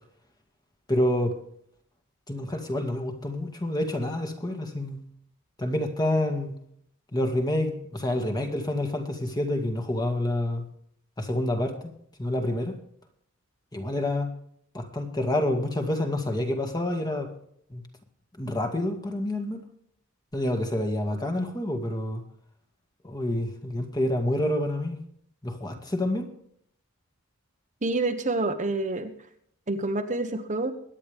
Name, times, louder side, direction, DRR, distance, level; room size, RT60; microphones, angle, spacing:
voice 1, 0.9-1.4 2.3-5.0 5.6-6.5 7.1-10.7 11.2-11.9 12.2-12.7 13.7-14.3 14.7-17.3 17.7-17.8 18.4-19.6 20.3-22.2 23.0-25.0 25.4-26.3, left 1 dB, 20° left, 4 dB, 2.0 m, -28 dB
voice 2, 27.8-29.1 29.7-30.7, right 2 dB, 35° right, 6 dB, 1.2 m, -27 dB
23.0 x 9.9 x 3.5 m, 0.66 s
head